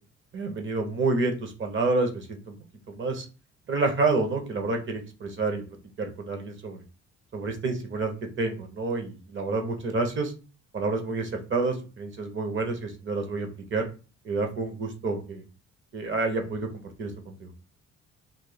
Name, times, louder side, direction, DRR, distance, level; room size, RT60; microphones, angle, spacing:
voice 1, 0.3-2.6 2.9-3.3 3.7-5.6 6.0-6.8 7.3-8.1 8.4-10.3 10.7-13.9 14.2-15.4 15.9-16.7 17.0-17.5, right 3 dB, 40° right, 5 dB, 1.0 m, -28 dB
2.7 x 2.6 x 4.0 m, 0.33 s
cardioid pair, 90°, 30 cm